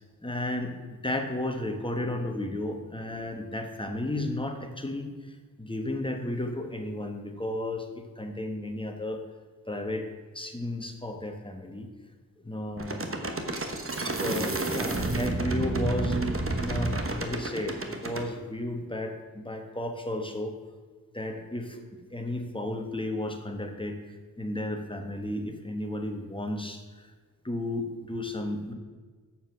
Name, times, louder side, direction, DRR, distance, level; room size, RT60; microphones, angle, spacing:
voice 1, 0.2-9.2 9.7-10.1 10.3-11.9 12.4-13.0 14.1-16.2 16.6-20.6 21.1-27.1 27.4-28.7, left 1 dB, 15° left, 4 dB, 1.2 m, -33 dB
sound 1, 12.8-18.3, right 2 dB, 40° right, 1.1 m, -30 dB
7.4 x 7.1 x 6.3 m, 1.4 s
wide cardioid pair, 85°, 34 cm